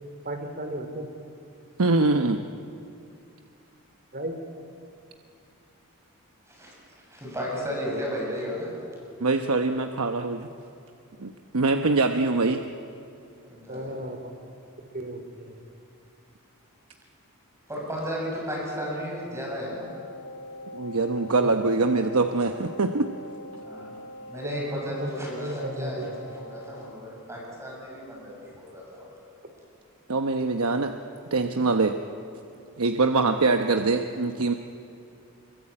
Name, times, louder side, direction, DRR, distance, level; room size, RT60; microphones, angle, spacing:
voice 1, 0.2-1.1 4.1-4.4 13.7-14.3 14.9-15.6 21.3-21.5 24.4-25.1 25.4-26.1, right 1 dB, 45° right, 6 dB, 3.1 m, -35 dB
voice 2, 1.8-2.4 9.2-10.5 11.2-12.6 20.7-23.1 30.1-30.9 31.3-32.0 32.8-34.5, right 3 dB, 75° right, 5 dB, 1.0 m, -23 dB
voice 3, 7.1-8.7 13.5-13.9 17.7-19.9 23.6-23.9 24.3-29.1, equal, 15° right, -3 dB, 7.5 m, -34 dB
Wind instrument woodwind instrument, 19.7-27.0, left 1 dB, 90° left, 3.2 m, -43 dB
25.0 x 23.0 x 8.7 m, 2.5 s
head